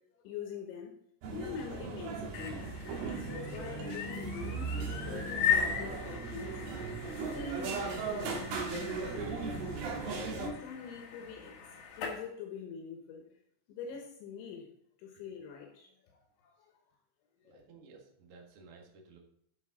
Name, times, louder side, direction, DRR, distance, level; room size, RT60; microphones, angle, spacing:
voice 1, 0.2-0.9 1.3-4.7 5.0-6.7 7.3-8.6 8.9-9.5 10.1-13.3 13.7-14.7 15.0-16.8 17.4-17.6, left 6 dB, 75° left, 2 dB, 3.5 m, -45 dB
sound 1, 1.2-10.5, right 4 dB, 65° right, 2.8 m, -37 dB
sound 2, 2.1-12.2, left 7 dB, 60° left, 2.3 m, -38 dB
voice 2, 17.4-19.2, right 4 dB, 80° right, 0 dB, 1.2 m, -55 dB
10.5 x 7.6 x 3.7 m, 0.68 s
omnidirectional pair, 5.6 m